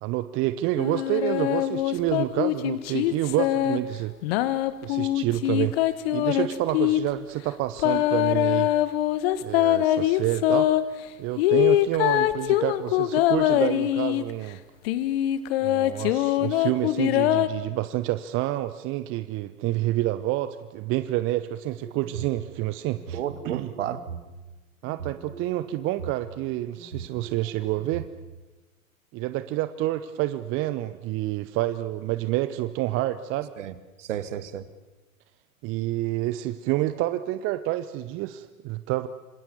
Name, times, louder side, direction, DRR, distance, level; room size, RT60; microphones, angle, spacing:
voice 1, 0.0-4.1 4.8-8.7 9.4-10.7 11.2-14.6 15.6-23.7 24.8-28.1 29.1-33.5 35.6-39.1, right 15 dB, 30° right, 13 dB, 1.0 m, -28 dB
sound 1, 0.8-3.8 4.2-7.0 7.8-10.8 11.4-14.3 14.9-17.5, left 14 dB, 45° left, 1.6 m, -23 dB
sound 2, 21.7-22.4 22.9-24.3 24.8-26.1 26.8-28.1, right 6 dB, 75° right, 5.5 m, -40 dB
voice 2, 23.1-24.0 33.6-34.7, right 10 dB, 55° right, 14 dB, 1.9 m, -32 dB
27.0 x 26.0 x 7.1 m, 1.2 s
figure-of-eight pair, 95°, 42 cm